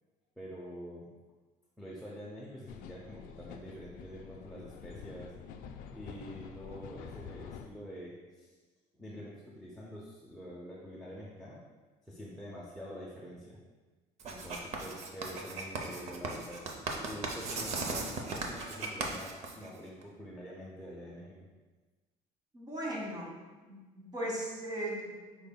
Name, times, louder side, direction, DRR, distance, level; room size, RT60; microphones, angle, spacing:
voice 1, 0.4-1.2 1.8-5.4 5.9-8.5 9.0-11.7 12.0-13.6 14.2-16.7 17.1-21.5, equal, ahead, -5 dB, 0.6 m, -46 dB
sound 1, 2.7-7.7, left 7 dB, 75° left, 0.4 m, -48 dB
Writing, 14.2-20.0, right 3 dB, 50° right, 0.6 m, -37 dB
voice 2, 22.5-23.3 23.7-25.5, right 1 dB, 30° right, -3 dB, 1.2 m, -38 dB
5.2 x 4.5 x 2.2 m, 1.3 s
cardioid pair, 140°, 15 cm